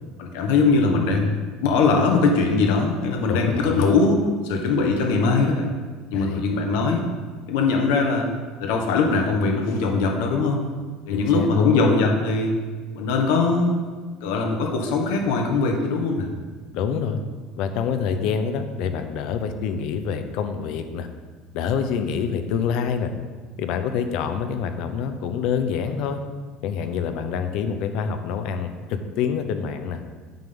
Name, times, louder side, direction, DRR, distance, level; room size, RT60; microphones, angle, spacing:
voice 1, 0.2-5.7 6.1-7.1 7.5-8.3 8.6-10.6 11.1-12.5 12.9-13.8 14.2-16.3, left 3 dB, 75° left, 2 dB, 1.3 m, -21 dB
voice 2, 3.3-3.9 6.1-6.4 11.1-12.0 16.7-17.2 17.6-21.1 21.5-23.1 23.6-26.2 26.6-30.0, left 6 dB, 50° left, 8 dB, 0.7 m, -26 dB
9.2 x 3.8 x 6.9 m, 1.5 s
cardioid pair, 180°, 0 cm